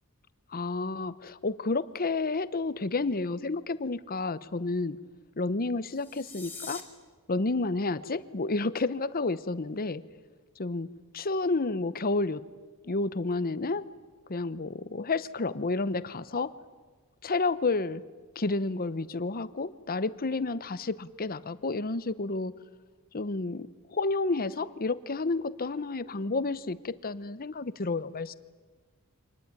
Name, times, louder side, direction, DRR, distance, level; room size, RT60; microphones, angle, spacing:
voice 1, 0.5-5.0 5.4-6.8 7.3-10.0 10.6-10.9 11.1-12.4 12.8-13.9 14.3-16.5 17.2-18.0 18.4-22.5 23.1-28.3, left 3 dB, 40° left, 15 dB, 0.8 m, -30 dB
sound 1, 5.9-6.8, left 4 dB, 10° left, 3.0 m, -43 dB
25.0 x 19.5 x 9.5 m, 1.4 s
head